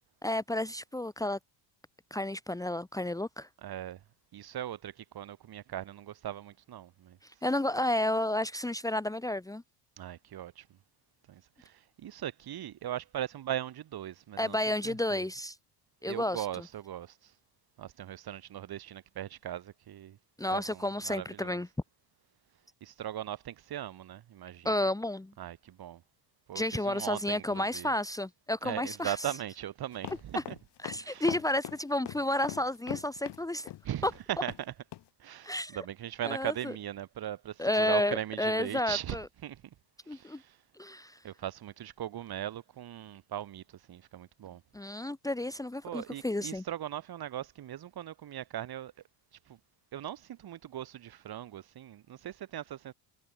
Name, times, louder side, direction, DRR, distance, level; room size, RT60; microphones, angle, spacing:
voice 1, 0.2-1.4 2.1-3.5 7.2-9.6 14.4-15.6 16.0-16.6 20.4-21.7 24.6-25.3 26.5-29.3 30.3-30.4 30.8-33.7 34.0-34.1 35.4-35.8 36.2-36.7 37.6-39.3 40.1-40.4 40.8-41.2 44.7-46.6, left 1 dB, 5° left, 1.6 m, -31 dB
voice 2, 3.6-4.0 4.3-7.2 10.0-10.5 12.0-15.3 16.1-17.1 17.8-20.2 20.5-21.6 22.8-24.7 25.4-26.0 26.5-27.9 28.6-30.6 31.0-31.3 33.8-34.5 35.2-39.6 40.1-40.2 41.2-43.6 43.9-44.6 45.8-48.9 49.9-52.9, right 11 dB, 50° right, 7.7 m, -39 dB
sound 1, 29.9-34.2 34.5-34.6 34.9-35.0, left 14 dB, 60° left, 4.5 m, -40 dB
supercardioid pair, 105°, 46 cm